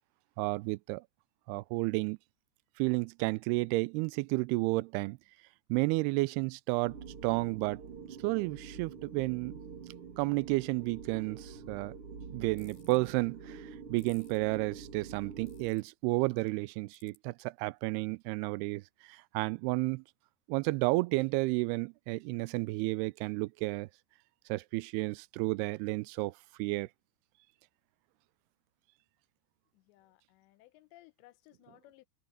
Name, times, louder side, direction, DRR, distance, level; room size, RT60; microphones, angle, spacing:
voice 1, 0.4-1.0 1.5-2.2 2.8-5.2 5.7-7.8 8.2-9.5 10.2-11.9 12.3-18.8 19.1-20.0 20.5-23.9 24.5-26.3 26.6-26.9, right 23 dB, 85° right, 2.3 m, -32 dB
sound 1, 6.8-15.7, right 5 dB, 45° right, 2.0 m, -47 dB
sound 2, 12.6-13.0 14.0-14.4 15.5-15.9 16.9-17.2, left 5 dB, 65° left, 8.1 m, -60 dB
voice 2, 29.9-32.1, left 17 dB, 85° left, 3.0 m, -60 dB
omnidirectional pair, 5.0 m